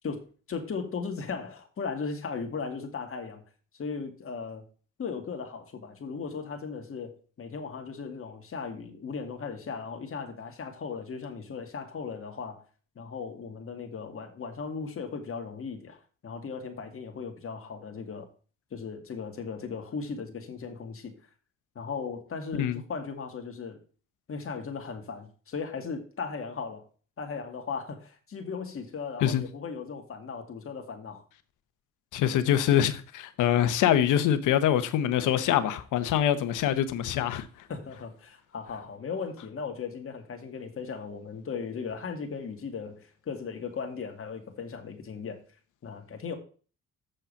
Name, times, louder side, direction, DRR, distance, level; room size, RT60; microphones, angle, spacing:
voice 1, 0.0-3.4 3.7-4.6 5.0-12.6 13.0-18.3 18.7-21.1 21.7-23.8 24.3-26.9 27.2-31.2 37.7-45.4 45.8-46.4, left 5 dB, 45° left, 2.4 m, -37 dB
voice 2, 32.1-37.5, left 10 dB, 85° left, 1.0 m, -24 dB
7.4 x 5.5 x 6.9 m
cardioid pair, 90°, 30 cm